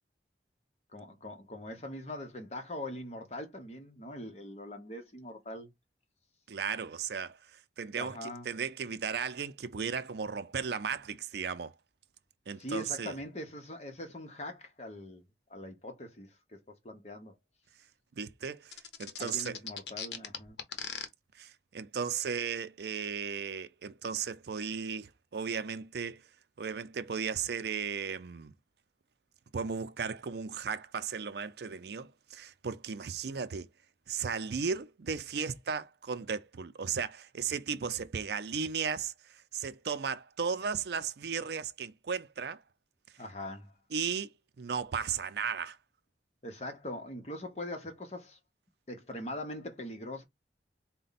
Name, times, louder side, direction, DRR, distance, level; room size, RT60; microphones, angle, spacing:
voice 1, 0.9-5.7 8.0-8.5 12.6-15.2 15.5-17.3 19.2-20.6 43.2-43.7 46.4-48.4 48.9-50.2, left 1 dB, 35° left, 0.9 m, -42 dB
voice 2, 6.5-11.7 12.5-13.1 18.2-19.6 21.4-26.2 26.6-28.5 29.5-33.7 34.1-42.6 43.9-45.8, right 6 dB, 65° right, 0.4 m, -35 dB
sound 1, 18.7-21.1, left 7 dB, 75° left, 0.8 m, -39 dB
4.2 x 2.2 x 4.0 m
head